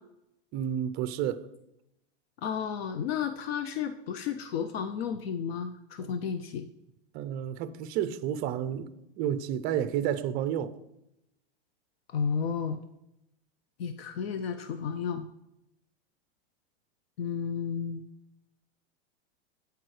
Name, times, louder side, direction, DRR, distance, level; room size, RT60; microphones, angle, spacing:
voice 1, 0.5-1.5 6.0-6.1 7.1-10.8, right 10 dB, 30° right, 0.4 m, -31 dB
voice 2, 2.4-6.7 12.1-12.8 13.8-15.3 17.2-18.0, left 7 dB, 65° left, 0.6 m, -32 dB
14.5 x 4.8 x 3.2 m
supercardioid pair, 140°, 33 cm